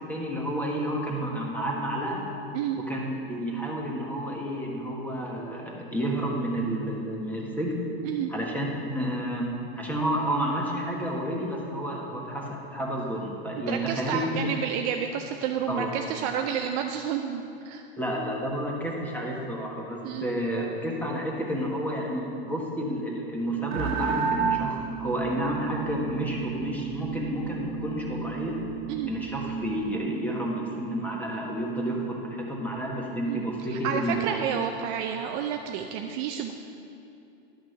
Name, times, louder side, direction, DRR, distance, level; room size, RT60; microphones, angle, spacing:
voice 1, 0.1-2.2 2.9-7.8 8.3-14.3 15.7-15.9 18.0-28.6 29.1-34.2, right 1 dB, 5° left, -2 dB, 1.4 m, -30 dB
voice 2, 13.7-17.8 20.0-20.3 28.9-29.1 33.3-33.4 33.7-36.5, right 8 dB, 40° right, 4 dB, 0.5 m, -30 dB
sound 1, 23.7-30.1, right 7 dB, 70° right, 1.4 m, -32 dB
11.5 x 5.9 x 5.7 m, 2.7 s
supercardioid pair, 135°, 32 cm